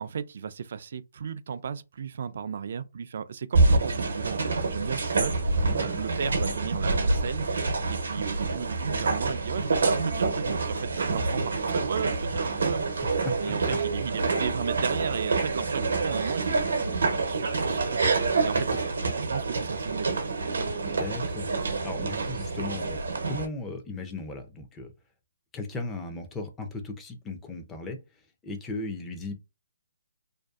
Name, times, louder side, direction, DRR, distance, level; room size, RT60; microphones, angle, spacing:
voice 1, 0.0-7.5 7.9-12.9 13.4-16.6 17.1-20.3, right 6 dB, 55° right, 0.3 m, -35 dB
sound 1, 3.5-23.5, right 3 dB, 75° right, 0.7 m, -27 dB
voice 2, 5.6-6.0 13.2-13.4 13.7-13.8 20.8-21.5 21.8-24.9 25.5-28.0 28.4-29.3, left 2 dB, 10° left, 0.4 m, -36 dB
2.5 x 2.3 x 2.3 m
hypercardioid pair, 155°, 0 cm